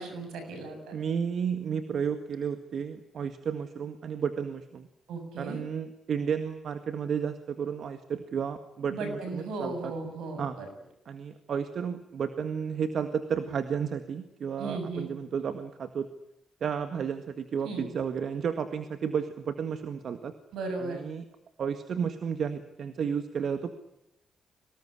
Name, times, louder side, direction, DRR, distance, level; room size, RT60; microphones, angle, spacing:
voice 1, 0.0-0.9 5.1-5.6 8.9-10.7 14.6-15.1 17.6-17.9 20.5-21.0, right 3 dB, 85° right, 7 dB, 7.1 m, -36 dB
voice 2, 0.9-4.9 5.4-9.9 10.4-10.6 11.1-16.1 16.6-20.3 20.8-21.2 21.6-23.7, right 7 dB, 65° right, 9 dB, 1.8 m, -32 dB
24.0 x 19.0 x 10.0 m, 0.85 s
cardioid pair, 70°, 0 cm